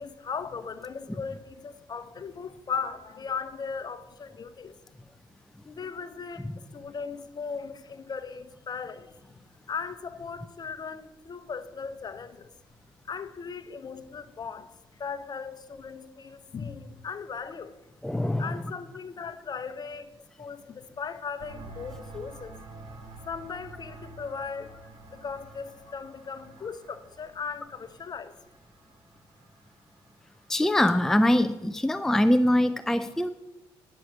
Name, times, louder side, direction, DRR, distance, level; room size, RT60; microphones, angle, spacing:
voice 1, 0.0-4.7 5.6-12.5 13.1-17.8 18.4-20.1 20.4-22.6 23.3-24.8 25.1-28.3, left 5 dB, 45° left, 0.9 m, -38 dB
voice 2, 18.0-18.5 30.5-33.3, left 1 dB, 5° left, 0.4 m, -23 dB
sound 1, 21.4-30.9, right 2 dB, 60° right, 1.9 m, -48 dB
9.0 x 6.5 x 7.4 m
supercardioid pair, 60°, 10 cm